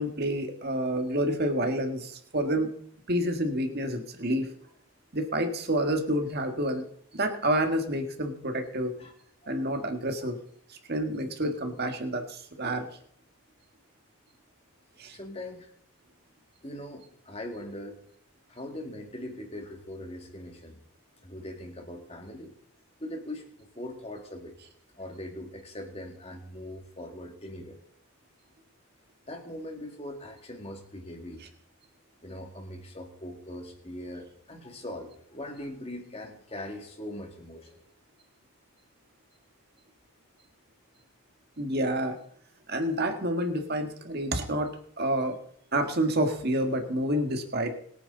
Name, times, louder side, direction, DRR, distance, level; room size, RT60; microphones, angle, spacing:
voice 1, 0.0-2.7 3.1-4.5 5.1-6.8 7.1-9.0 9.5-10.4 10.7-12.9 15.0-15.2 41.6-42.2 42.7-44.7 45.0-45.4 45.7-47.7, right 1 dB, 45° right, 5 dB, 1.8 m, -28 dB
voice 2, 15.1-15.7 16.6-18.0 18.5-20.8 21.2-22.6 23.0-24.6 25.0-27.8 29.3-31.4 32.2-37.8, left 1 dB, 25° left, 3 dB, 2.2 m, -41 dB
22.0 x 9.2 x 4.0 m, 0.63 s
head